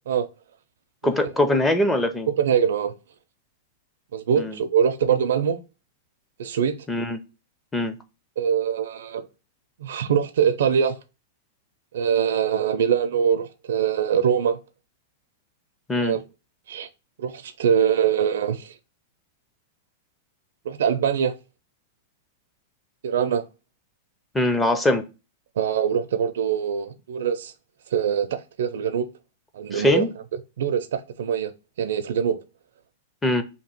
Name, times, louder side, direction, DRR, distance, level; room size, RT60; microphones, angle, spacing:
voice 1, 1.0-2.3 4.4-4.5 6.9-7.2 7.7-8.0 15.9-16.2 24.3-25.1 29.7-30.1 33.2-33.4, left 1 dB, 10° left, 0.5 m, -22 dB
voice 2, 2.3-2.9 4.1-5.6 6.4-6.9 8.4-9.3 9.8-11.0 11.9-14.6 15.9-16.2 16.7-16.9 17.2-18.7 20.6-21.3 23.0-23.4 25.6-27.5 27.9-29.1 29.5-30.1 30.6-31.5 31.8-32.4, right 8 dB, 80° right, 0.4 m, -23 dB
2.8 x 2.7 x 4.3 m
supercardioid pair, 160°, 0 cm